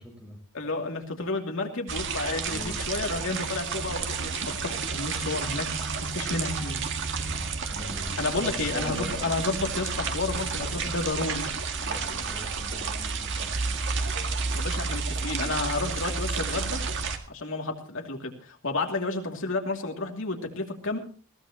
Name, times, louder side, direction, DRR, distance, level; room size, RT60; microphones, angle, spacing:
voice 1, 0.0-0.4 2.4-2.8 7.2-9.2 11.8-13.8, equal, 5° right, 2 dB, 5.3 m, -42 dB
voice 2, 0.5-5.6 6.0-6.9 8.2-11.5 14.5-16.8 17.3-21.0, left 3 dB, 60° left, 3 dB, 2.8 m, -31 dB
sound 1, 1.9-17.2, right 4 dB, 55° right, 1.8 m, -31 dB
21.0 x 16.5 x 3.0 m, 0.37 s
head